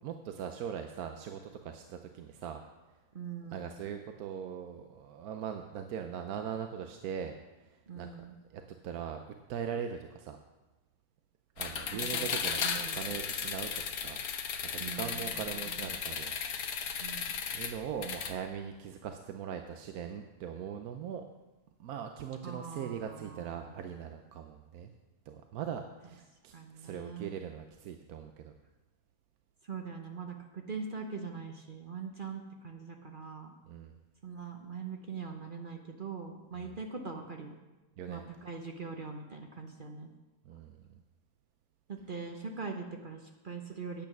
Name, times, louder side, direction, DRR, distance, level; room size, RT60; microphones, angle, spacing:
voice 1, 0.0-2.6 3.5-8.1 8.5-9.2 9.5-10.4 11.6-14.2 14.7-17.1 17.5-21.2 21.8-24.9 25.3-28.5 33.7-33.9 36.5-36.8 38.0-38.3 40.4-41.0, right 8 dB, 80° right, 6 dB, 1.1 m, -41 dB
voice 2, 3.1-3.7 7.9-8.3 11.9-12.3 12.6-13.1 14.8-15.9 17.0-17.4 22.4-23.8 26.5-27.4 29.6-33.5 34.2-37.6 38.1-40.1 41.9-44.1, right 5 dB, 40° right, 3 dB, 0.8 m, -42 dB
sound 1, 11.6-18.3, left 6 dB, 85° left, 1.3 m, -35 dB
8.9 x 8.7 x 6.0 m, 1.1 s
omnidirectional pair, 1.5 m